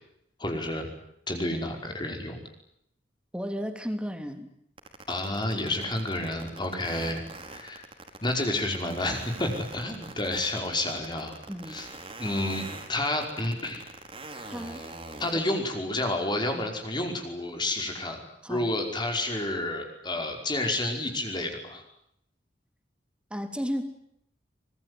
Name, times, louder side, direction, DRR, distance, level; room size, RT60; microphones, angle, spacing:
voice 1, 0.4-0.9 1.3-2.4 5.1-7.9 8.2-11.3 11.7-11.9 12.2-13.8 14.4-14.9 15.2-18.2 18.5-21.8, left 1 dB, 25° left, 3 dB, 5.2 m, -30 dB
voice 2, 3.3-4.5 11.5-11.8 14.5-14.8 16.5-16.7 18.4-18.7 23.3-23.8, equal, 5° right, 7 dB, 3.1 m, -33 dB
sound 1, 4.8-15.3, right 3 dB, 30° right, 5.0 m, -42 dB
25.0 x 22.0 x 9.7 m, 0.73 s
head